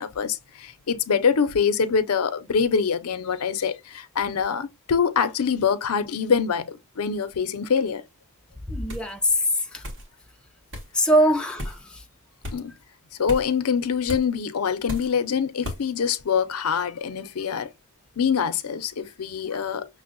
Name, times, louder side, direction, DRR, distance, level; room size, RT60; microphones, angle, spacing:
voice 1, 0.0-8.0 12.5-12.7 13.2-17.7 18.2-19.9, left 6 dB, 85° left, 0.5 m, -24 dB
voice 2, 8.7-9.9 10.9-12.0 19.5-19.6, equal, 5° left, 0.3 m, -23 dB
sound 1, 8.9-9.1 9.8-10.1 10.7-10.9 11.6-11.8 12.4-12.6 13.3-13.5 14.1-14.3 14.9-15.2 15.6-15.8, left 1 dB, 55° right, 1.3 m, -34 dB
5.9 x 2.1 x 2.5 m
head